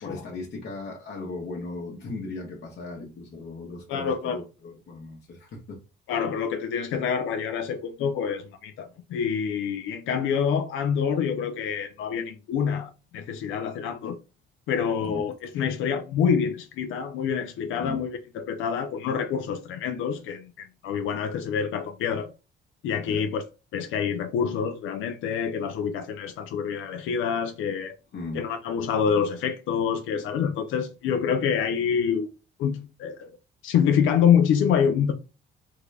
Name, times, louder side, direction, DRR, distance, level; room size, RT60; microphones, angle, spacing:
voice 1, 0.0-5.8 15.0-15.3 17.8-18.0 23.0-23.3 28.1-28.4, left 3 dB, 60° left, 0.9 m, -37 dB
voice 2, 3.9-4.4 6.1-14.2 14.7-22.3 22.8-23.4 23.7-28.0 28.3-32.3 32.6-33.3 33.6-35.1, left 7 dB, 80° left, 0.4 m, -26 dB
3.7 x 2.3 x 3.2 m
cardioid pair, 90°, 20 cm